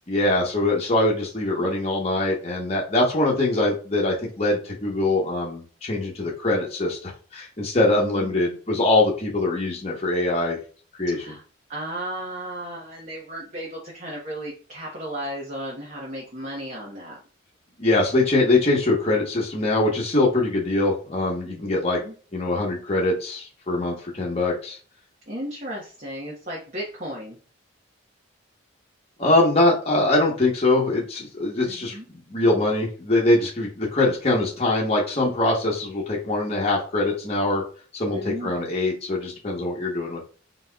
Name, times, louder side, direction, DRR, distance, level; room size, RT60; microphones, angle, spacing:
voice 1, 0.1-10.6 11.0-11.3 17.8-22.0 22.3-24.8 29.2-31.9 32.3-37.6 37.9-40.3, left 2 dB, 30° left, -4 dB, 1.0 m, -23 dB
voice 2, 7.9-8.6 11.1-11.4 11.7-17.2 21.4-22.1 25.3-27.4 31.7-32.1 38.1-38.7, right 1 dB, 40° right, -4 dB, 1.1 m, -35 dB
4.1 x 4.1 x 2.3 m, 0.38 s
head